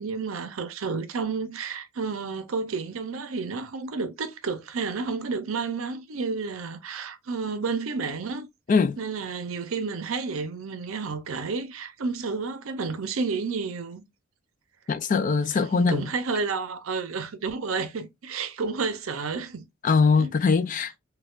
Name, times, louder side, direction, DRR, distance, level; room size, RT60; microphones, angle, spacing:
voice 1, 0.0-8.5 9.0-14.0 15.5-19.6 20.2-20.3, right 4 dB, 75° right, 0.6 m, -31 dB
voice 2, 14.9-16.0 19.8-21.0, left 5 dB, 40° left, 0.3 m, -22 dB
4.2 x 2.3 x 2.4 m
head